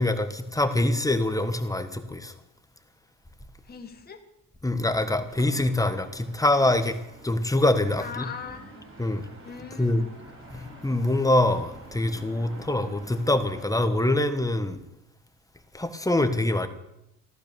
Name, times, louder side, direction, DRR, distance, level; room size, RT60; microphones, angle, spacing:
voice 1, 0.0-2.3 4.6-7.0 7.2-8.3 9.0-9.3 9.8-10.0 10.5-14.8 15.7-16.7, left 1 dB, 10° left, 9 dB, 1.4 m, -24 dB
voice 2, 3.6-4.2 8.0-8.9 9.4-10.2, left 6 dB, 30° left, 3 dB, 1.6 m, -40 dB
sound 1, 5.3-13.7, right 2 dB, 40° right, 5.0 m, -48 dB
15.0 x 11.5 x 6.9 m, 0.84 s
cardioid pair, 110°, 31 cm